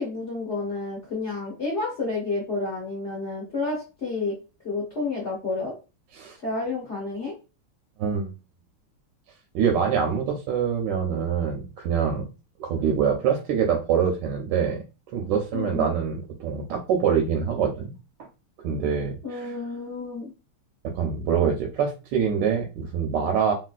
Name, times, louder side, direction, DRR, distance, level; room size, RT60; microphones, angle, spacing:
voice 1, 0.0-4.4 4.6-5.7 6.4-7.3 15.5-15.9 19.2-20.3, left 3 dB, 50° left, -3 dB, 0.9 m, -30 dB
voice 2, 8.0-8.3 9.5-12.3 12.6-14.8 15.1-17.9 18.6-19.5 20.9-23.5, right 7 dB, 75° right, 2 dB, 1.1 m, -25 dB
3.0 x 2.9 x 2.3 m, 0.30 s
omnidirectional pair, 2.3 m